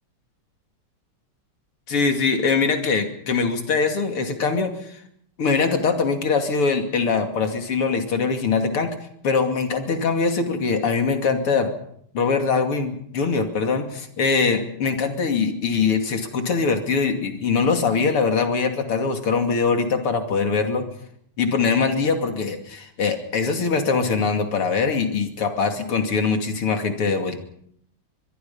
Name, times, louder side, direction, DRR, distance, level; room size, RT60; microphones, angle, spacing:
voice 1, 1.9-5.0 5.4-9.0 9.2-11.7 12.1-20.8 21.4-27.4, left 5 dB, 85° left, 5 dB, 3.5 m, -22 dB
23.5 x 23.0 x 5.6 m, 0.67 s
omnidirectional pair, 2.4 m